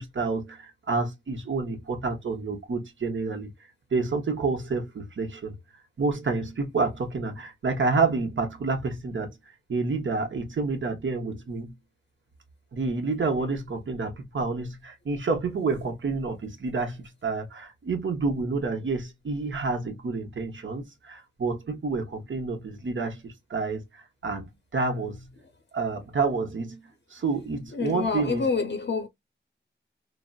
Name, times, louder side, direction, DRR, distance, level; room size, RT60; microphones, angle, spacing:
voice 1, 0.0-3.5 3.9-5.5 6.0-9.3 9.7-11.7 12.7-25.3 25.7-26.8 27.1-28.4, right 4 dB, 75° right, 0.9 m, -29 dB
voice 2, 27.7-29.1, left 4 dB, 65° left, 0.6 m, -27 dB
3.8 x 2.0 x 2.3 m
wide cardioid pair, 70°, 20 cm